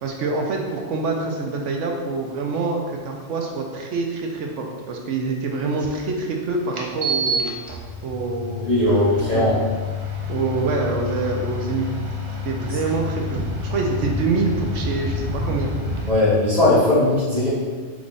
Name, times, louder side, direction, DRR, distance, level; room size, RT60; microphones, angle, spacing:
voice 1, 0.0-7.6 8.0-9.5 10.3-11.9 12.4-15.7, right 3 dB, 75° right, 1 dB, 0.9 m, -26 dB
sound 1, 5.8-5.9 6.7-16.1, left 2 dB, 50° right, 0.3 m, -28 dB
voice 2, 8.6-9.6 16.1-17.5, left 1 dB, 35° left, -13 dB, 1.1 m, -18 dB
4.7 x 2.4 x 3.9 m, 1.5 s
omnidirectional pair, 1.3 m